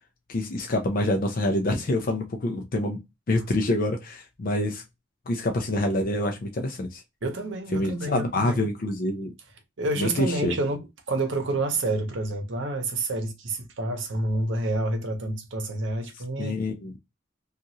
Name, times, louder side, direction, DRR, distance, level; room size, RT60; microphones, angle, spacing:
voice 1, 0.3-3.0 3.3-4.8 5.3-7.0 7.7-9.3 10.0-10.5 16.4-16.9, left 1 dB, 45° left, 0.5 m, -26 dB
voice 2, 7.2-8.7 9.8-16.6, right 2 dB, 70° right, 0.7 m, -29 dB
2.9 x 2.4 x 2.6 m
head